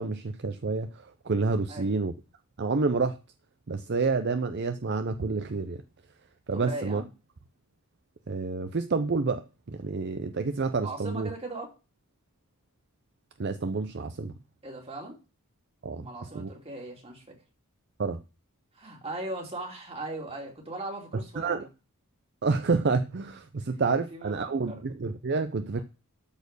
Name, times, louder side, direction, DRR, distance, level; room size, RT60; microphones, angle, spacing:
voice 1, 0.0-2.1 2.6-3.2 3.7-5.8 6.5-7.0 8.3-9.4 9.7-11.3 13.4-14.3 15.8-16.1 16.3-16.5 18.0-18.2 21.4-21.6 22.4-25.8, right 4 dB, 50° right, 0.5 m, -28 dB
voice 2, 6.5-7.1 10.8-11.7 14.6-15.2 16.0-17.4 18.7-21.7 23.9-24.8, right 2 dB, 25° right, 2.7 m, -39 dB
13.0 x 4.4 x 6.7 m
head